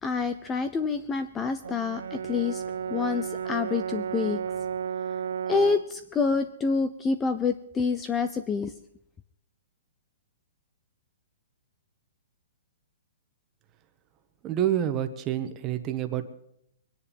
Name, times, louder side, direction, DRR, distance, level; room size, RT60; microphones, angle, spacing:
voice 1, 0.0-2.6 2.9-4.4 5.5-8.7, left 5 dB, 10° left, 10 dB, 0.6 m, -27 dB
Brass instrument, 1.6-5.9, right 7 dB, 80° right, 0.5 m, -33 dB
voice 2, 14.4-16.3, right 11 dB, 20° right, 7 dB, 1.3 m, -28 dB
22.5 x 10.0 x 5.2 m, 0.74 s
hypercardioid pair, 165°, 0 cm